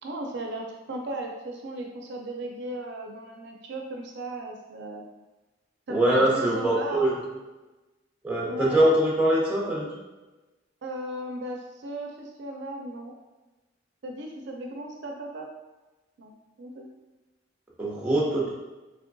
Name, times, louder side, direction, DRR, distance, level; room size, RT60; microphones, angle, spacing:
voice 1, 0.0-5.0 5.9-7.1 8.5-8.9 10.8-13.1 14.0-15.5 16.2-16.9, right 1 dB, 60° right, 1 dB, 0.4 m, -36 dB
voice 2, 5.9-7.1 8.2-9.9 17.8-18.5, right 1 dB, 5° right, -4 dB, 0.7 m, -23 dB
3.5 x 3.3 x 2.6 m, 1.1 s
head